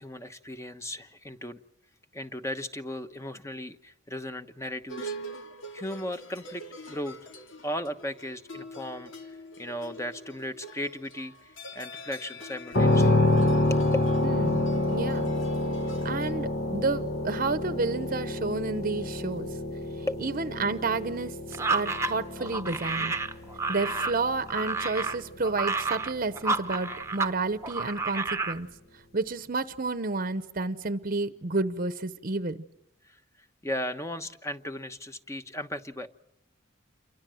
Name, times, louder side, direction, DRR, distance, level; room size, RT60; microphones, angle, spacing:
voice 1, 0.0-1.6 2.1-5.1 5.7-7.2 7.6-9.1 9.6-13.2 13.7-13.9 20.1-20.2 33.1-33.2 33.6-36.1, left 1 dB, 15° left, 1.1 m, -36 dB
sound 1, 4.9-16.3, equal, 75° left, 2.5 m, -44 dB
sound 2, 12.7-26.5, left 2 dB, 55° left, 1.5 m, -28 dB
voice 2, 14.2-14.6 14.9-15.3 16.0-19.5 20.2-23.1 23.7-28.7 28.9-32.6, right 3 dB, 45° right, 0.9 m, -30 dB
sound 3, 21.5-27.3 27.6-28.6, right 3 dB, 15° right, 1.0 m, -30 dB
29.0 x 24.0 x 7.8 m
head